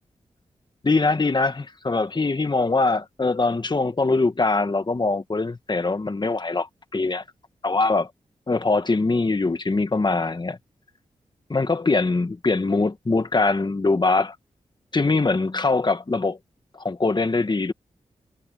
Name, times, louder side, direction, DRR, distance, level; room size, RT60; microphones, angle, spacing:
voice 1, 0.8-7.2 7.6-8.1 8.5-10.6 11.5-14.4 14.9-16.4 16.7-17.7, left 3 dB, 35° left, 1.8 m, -22 dB
cardioid pair, 50°, 13 cm